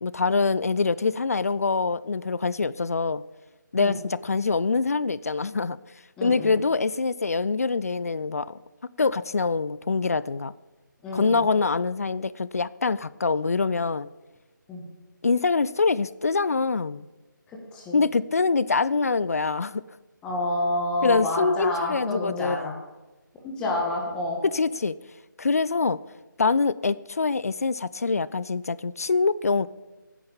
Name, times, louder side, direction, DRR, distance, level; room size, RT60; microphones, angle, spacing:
voice 1, 0.0-3.2 3.7-5.8 6.2-8.6 9.0-10.5 11.1-14.1 15.2-17.1 17.9-19.8 21.0-22.7 24.4-25.0 25.4-26.0 26.4-29.7, left 4 dB, 45° left, 18 dB, 0.5 m, -24 dB
voice 2, 6.2-6.6 11.0-11.5 14.7-14.8 17.7-18.0 20.2-22.7 23.4-24.4, left 2 dB, 10° left, -2 dB, 1.6 m, -28 dB
16.5 x 10.0 x 7.2 m, 1.1 s
figure-of-eight pair, 155°, 11 cm